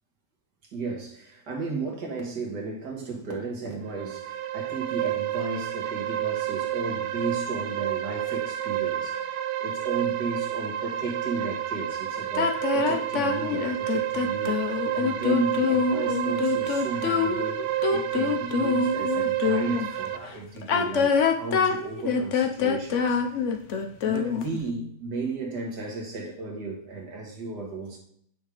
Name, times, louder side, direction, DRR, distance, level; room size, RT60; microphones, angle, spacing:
voice 1, 0.7-14.6 14.9-23.2 24.0-28.0, right 3 dB, 55° right, 0 dB, 2.1 m, -34 dB
sound 1, 3.8-20.2, right 12 dB, 75° right, 1.1 m, -30 dB
sound 2, 12.3-19.9 20.6-24.6, left 6 dB, 65° left, 0.7 m, -25 dB
9.2 x 3.6 x 4.9 m, 0.67 s
omnidirectional pair, 2.2 m